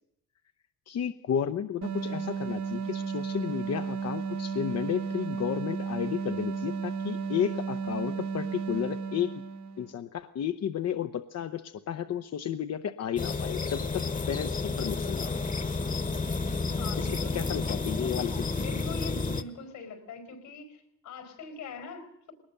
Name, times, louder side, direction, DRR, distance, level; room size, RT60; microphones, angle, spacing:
voice 1, 0.9-9.4 9.8-15.4 17.0-18.5, left 9 dB, 55° left, 0.8 m, -33 dB
sound 1, 1.8-9.9, right 5 dB, 65° right, 1.5 m, -33 dB
sound 2, 13.2-19.4, left 3 dB, 25° left, 1.2 m, -31 dB
voice 2, 16.8-17.4 18.5-22.3, left 4 dB, 85° left, 4.9 m, -43 dB
20.5 x 19.0 x 6.7 m
cardioid pair, 90°, 30 cm